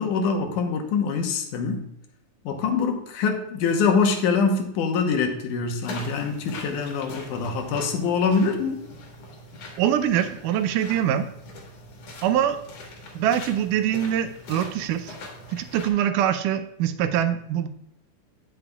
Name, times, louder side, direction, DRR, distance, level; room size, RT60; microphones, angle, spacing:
voice 1, 0.0-1.8 2.5-8.8, left 5 dB, 80° left, 4 dB, 2.5 m, -24 dB
sound 1, 5.8-15.9, left 2 dB, 60° left, 2.5 m, -42 dB
voice 2, 9.8-11.3 12.2-12.6 13.1-15.2 15.5-17.7, right 10 dB, 85° right, 10 dB, 2.2 m, -24 dB
9.4 x 8.8 x 2.3 m, 0.75 s
omnidirectional pair, 3.6 m